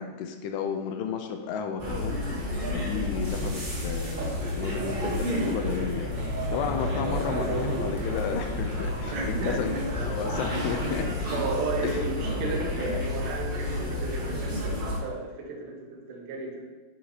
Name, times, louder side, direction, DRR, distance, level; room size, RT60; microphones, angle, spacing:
voice 1, 0.0-6.2 6.5-9.7 10.0-11.1 11.8-12.0, left 6 dB, 85° left, 5 dB, 2.6 m, -33 dB
sound 1, 1.8-15.0, left 1 dB, 30° right, 1.1 m, -30 dB
voice 2, 9.1-9.8 11.3-16.7, right 3 dB, 85° right, 1 dB, 3.3 m, -34 dB
8.2 x 7.9 x 2.9 m, 1.2 s
omnidirectional pair, 4.8 m